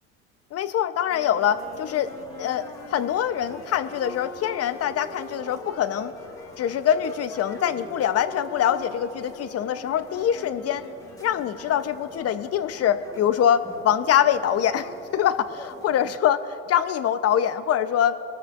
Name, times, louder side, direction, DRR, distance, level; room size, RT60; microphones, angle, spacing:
voice 1, 0.5-6.1 6.6-10.8 11.2-18.2, left 9 dB, 40° left, 12 dB, 0.8 m, -24 dB
Wind instrument woodwind instrument, 1.1-12.2, left 2 dB, 80° left, 2.3 m, -45 dB
sound 1, 1.3-16.1, left 1 dB, 10° left, 1.5 m, -46 dB
24.0 x 13.5 x 2.6 m, 2.8 s
hypercardioid pair, 75°, 37 cm